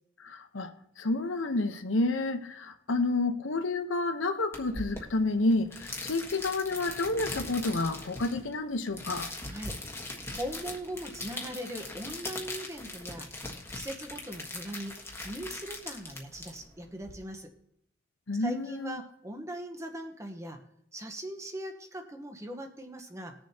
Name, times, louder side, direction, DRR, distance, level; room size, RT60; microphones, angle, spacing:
voice 1, 0.2-9.3 18.3-19.0, left 2 dB, 80° left, 0.9 m, -30 dB
sound 1, 4.5-17.1, left 2 dB, 15° left, 1.3 m, -40 dB
voice 2, 10.4-13.3 13.7-14.9 15.2-17.5 18.4-20.6 20.9-23.3, right 1 dB, 15° right, 1.1 m, -40 dB
20.0 x 7.0 x 2.8 m
head